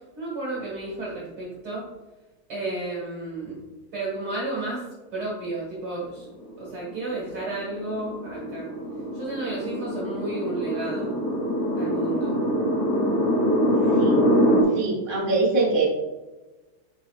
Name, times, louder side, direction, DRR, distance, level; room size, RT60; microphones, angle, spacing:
voice 1, 0.2-1.9 2.5-3.6 3.9-4.8 5.1-6.3 6.6-8.7 9.1-11.1 11.8-12.4, right 2 dB, 75° right, -5 dB, 1.1 m, -32 dB
sound 1, 6.6-14.6, equal, 50° left, 2.8 m, -24 dB
voice 2, 13.9-14.2 14.7-15.9, right 3 dB, 30° right, -3 dB, 0.9 m, -23 dB
9.8 x 5.4 x 2.4 m, 1.1 s
omnidirectional pair, 5.1 m